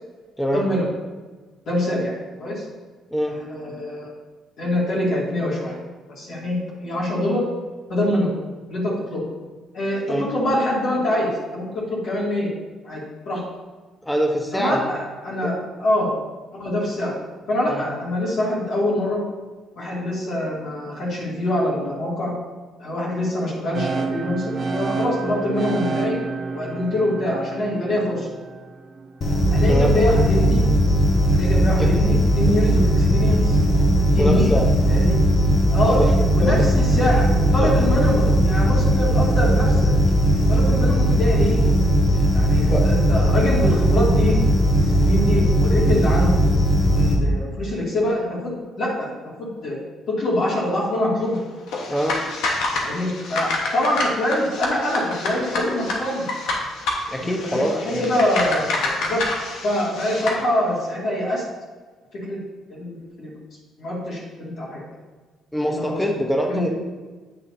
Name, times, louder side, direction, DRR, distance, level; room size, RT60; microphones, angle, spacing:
voice 1, 0.5-0.9 1.7-2.1 2.4-2.6 3.3-4.1 4.6-5.8 6.2-7.4 7.9-8.3 8.7-9.2 9.7-12.5 12.8-13.0 13.3-13.4 14.5-16.1 16.6-17.1 17.5-19.2 19.8-22.3 22.8-24.4 24.7-26.2 26.5-28.3 29.5-30.6 31.3-33.6 34.1-34.5 34.9-35.2 35.7-36.0 36.3-39.9 40.5-41.6 42.3-44.4 44.8-46.4 46.9-48.5 48.8-49.1 49.4-49.8 50.1-51.4 52.8-56.3 57.1-59.3 59.6-61.5 62.2-62.4 62.7-63.3 63.8-64.8 65.6-66.0 66.5-66.7, left 1 dB, 55° left, -7 dB, 2.4 m, -24 dB
voice 2, 14.0-14.9 15.4-15.5 17.7-17.8 29.7-29.9 31.8-31.9 34.2-34.7 35.9-36.1 36.4-36.7 37.6-37.7 42.7-42.8 51.9-52.2 57.1-58.0 65.5-66.7, equal, 5° left, 2 dB, 0.8 m, -24 dB
sound 1, 23.7-29.7, right 4 dB, 35° right, 0.7 m, -29 dB
sound 2, 29.2-47.1, equal, 35° left, 1.4 m, -18 dB
sound 3, 51.7-60.4, left 2 dB, 85° left, 1.3 m, -28 dB
9.0 x 6.2 x 2.7 m, 1.3 s
cardioid pair, 145°, 0 cm